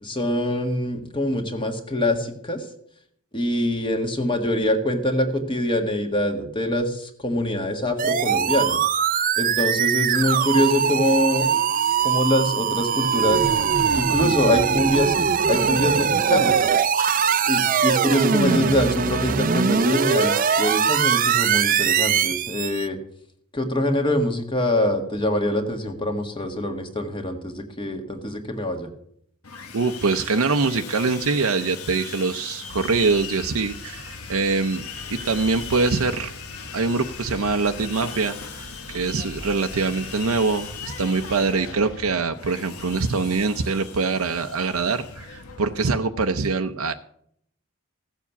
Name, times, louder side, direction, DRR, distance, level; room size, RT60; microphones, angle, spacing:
voice 1, 0.0-2.7 3.3-8.8 9.4-11.5 12.0-13.4 13.9-15.1 15.5-16.7 17.4-23.0 23.5-28.9, left 1 dB, 25° left, 5 dB, 1.6 m, -24 dB
sound 1, 8.0-22.9, right 7 dB, 40° right, 0.5 m, -21 dB
Sawing, 29.4-45.9, left 6 dB, 85° left, 1.5 m, -39 dB
voice 2, 29.7-34.8 35.1-36.3 36.7-46.9, right 4 dB, 80° right, 6 dB, 0.6 m, -24 dB
sound 2, 32.7-42.2, equal, 65° left, 2.4 m, -43 dB
15.5 x 7.3 x 7.0 m, 0.68 s
head